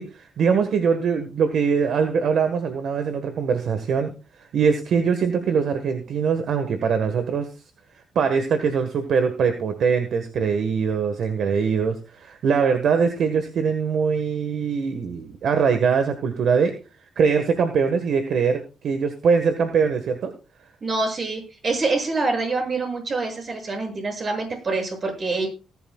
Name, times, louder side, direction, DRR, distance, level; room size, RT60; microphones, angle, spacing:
voice 1, 0.0-4.1 4.5-7.5 8.1-16.7 17.2-20.3, right 6 dB, 65° right, 7 dB, 1.5 m, -22 dB
voice 2, 20.8-25.5, right 3 dB, 40° right, 3 dB, 7.5 m, -26 dB
19.0 x 11.5 x 2.4 m, 0.33 s
cardioid pair, 90°, 0 cm